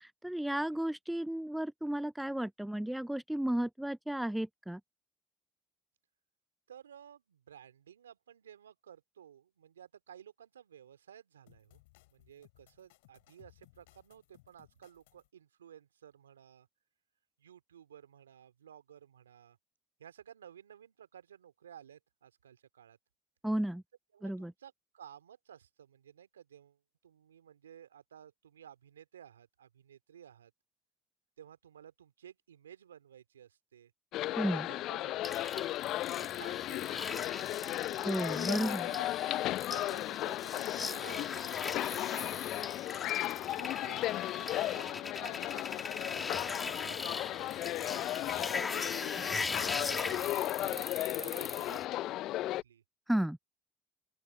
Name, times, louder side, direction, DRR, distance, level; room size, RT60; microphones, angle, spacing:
voice 1, 0.0-4.8 23.4-23.8 24.2-24.5 34.4-34.7 38.0-38.9 53.1-53.4, right 1 dB, 5° right, 0.3 m, -33 dB
voice 2, 6.7-11.8 12.1-16.7 17.4-19.6 20.0-23.0 24.1-30.5 31.4-33.9 34.5-37.5 37.8-38.4 38.9-42.1 43.6-48.4 49.2-52.8, right 9 dB, 90° right, 2.6 m, -55 dB
sound 1, 11.5-15.3, left 22 dB, 75° left, 4.0 m, -64 dB
sound 2, 34.1-52.6, left 15 dB, 60° left, 0.4 m, -35 dB
sound 3, 35.2-51.8, left 3 dB, 25° left, 1.9 m, -40 dB
open air
hypercardioid pair, 60°, 0 cm